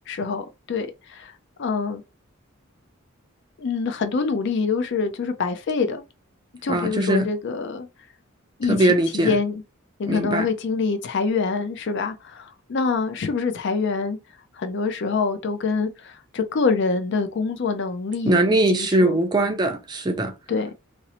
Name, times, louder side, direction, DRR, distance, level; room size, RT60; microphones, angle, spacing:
voice 1, 0.1-1.3 1.6-2.0 3.6-6.0 6.6-7.9 8.6-9.6 10.0-14.2 14.5-19.2 20.5-20.7, left 4 dB, 55° left, 0.4 m, -25 dB
voice 2, 6.7-7.3 8.7-9.4 10.1-10.5 18.2-20.3, right 1 dB, 20° right, 0.4 m, -21 dB
2.6 x 2.0 x 2.8 m
head